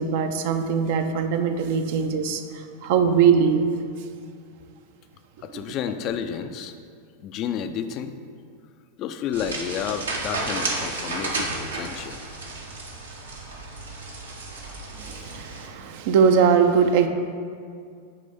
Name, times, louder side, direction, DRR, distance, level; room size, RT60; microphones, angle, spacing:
voice 1, 0.0-3.7 5.5-5.6 15.0-17.1, right 6 dB, 50° right, 7 dB, 0.5 m, -21 dB
voice 2, 5.4-6.7 7.2-8.1 9.0-12.2, left 8 dB, 35° left, 9 dB, 0.4 m, -31 dB
sound 1, 9.3-15.7, right 2 dB, 70° right, 0.9 m, -32 dB
8.5 x 3.3 x 5.3 m, 2.2 s
figure-of-eight pair, 90°, 0 cm